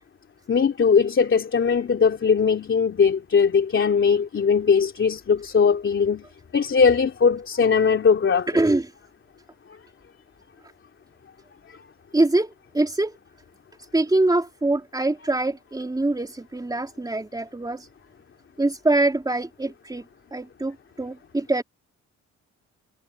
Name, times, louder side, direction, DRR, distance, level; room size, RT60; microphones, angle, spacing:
voice 1, 0.5-6.2 6.5-8.5, left 6 dB, 40° left, 2.8 m, -20 dB
voice 2, 8.5-8.9 12.1-13.2 13.9-17.9 18.6-20.0 20.3-21.6, right 2 dB, 15° right, 3.5 m, -24 dB
cardioid pair, 90°, 30 cm